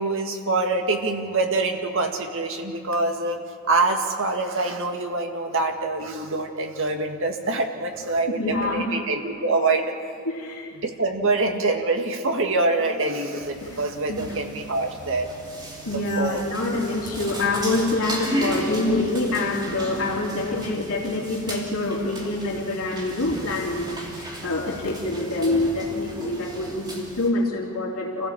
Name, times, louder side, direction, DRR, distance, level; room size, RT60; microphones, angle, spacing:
voice 1, 0.0-3.4 3.7-9.9 10.8-15.3 16.2-16.4, right 3 dB, 60° right, 3 dB, 2.0 m, -25 dB
voice 2, 8.3-8.9 10.2-10.7 13.6-13.7 14.1-14.3 15.8-28.3, left 2 dB, 70° left, -2 dB, 3.3 m, -26 dB
sound 1, 13.4-27.3, right 1 dB, 20° right, 2.8 m, -35 dB
27.5 x 16.0 x 7.5 m, 2.3 s
head